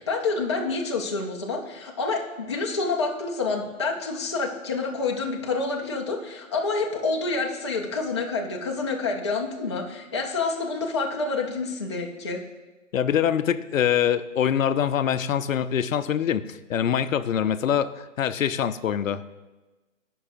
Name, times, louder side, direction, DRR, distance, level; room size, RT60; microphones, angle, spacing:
voice 1, 0.0-12.4, left 3 dB, 25° left, 0 dB, 0.4 m, -28 dB
voice 2, 12.9-19.3, left 9 dB, 75° left, 13 dB, 0.5 m, -24 dB
14.0 x 5.4 x 2.5 m, 1.2 s
figure-of-eight pair, 140°, 40 cm